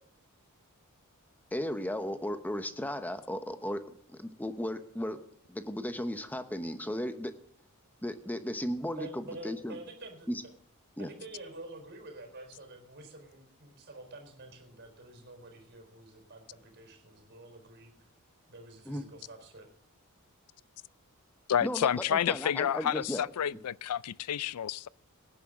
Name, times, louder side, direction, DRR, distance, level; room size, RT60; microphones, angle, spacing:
voice 1, 1.5-3.8 4.2-5.2 5.5-7.3 8.0-9.8 10.3-10.4 11.0-11.1 18.9-19.0 21.6-23.2, equal, 10° left, 1.0 m, -35 dB
voice 2, 8.9-10.3 11.0-17.9 18.5-19.7, right 2 dB, 50° right, 4.3 m, -48 dB
voice 3, 21.5-24.9, left 9 dB, 90° left, 0.4 m, -30 dB
18.0 x 10.5 x 3.8 m
head